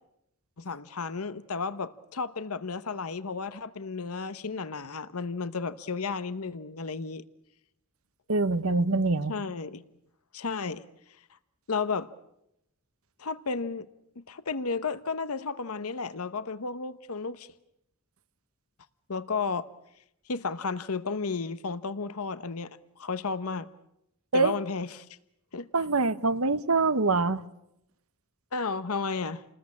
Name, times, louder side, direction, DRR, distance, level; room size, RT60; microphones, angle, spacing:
voice 1, 0.6-7.2 9.3-9.8 10.3-10.9 11.7-12.1 13.2-13.9 14.2-17.5 19.1-19.7 20.3-22.7 23.0-23.7 24.3-25.1 25.5-25.7 28.5-29.4, left 4 dB, 80° left, 1.0 m, -33 dB
voice 2, 8.3-9.3 24.3-24.5 25.7-27.4, right 3 dB, 75° right, 1.2 m, -24 dB
29.5 x 20.5 x 8.6 m
head